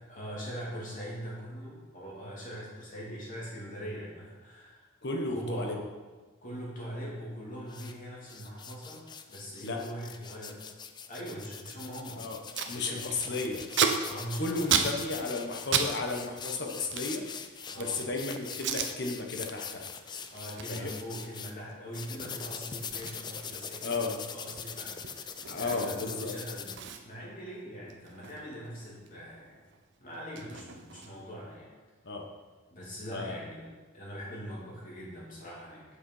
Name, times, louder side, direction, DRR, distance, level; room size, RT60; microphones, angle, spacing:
voice 1, 0.1-4.9 5.3-5.7 6.4-10.6 11.1-12.3 12.6-13.4 14.0-14.9 17.7-18.0 20.2-26.8 27.0-29.6 30.0-31.7 32.7-35.8, equal, 40° left, -5 dB, 3.0 m, -42 dB
voice 2, 5.0-5.8 9.6-9.8 12.2-12.4 12.7-13.6 14.4-17.2 17.5-20.2 20.7-20.9 23.8-24.1 25.5-26.3 32.0-32.3 33.1-33.4, left 3 dB, 55° left, 2 dB, 1.2 m, -34 dB
sound 1, 7.7-7.9 8.3-21.5 21.9-26.8, left 6 dB, 20° left, 0.4 m, -42 dB
Packing tape duct tape, 12.0-12.1 12.3-12.7 13.1-15.9 16.2-18.0 18.5-18.9 19.4-19.6 19.9-26.2 26.4-26.5 26.8-29.1 29.4-31.4, right 7 dB, 55° right, 0.8 m, -34 dB
8.3 x 6.6 x 5.6 m, 1.3 s
head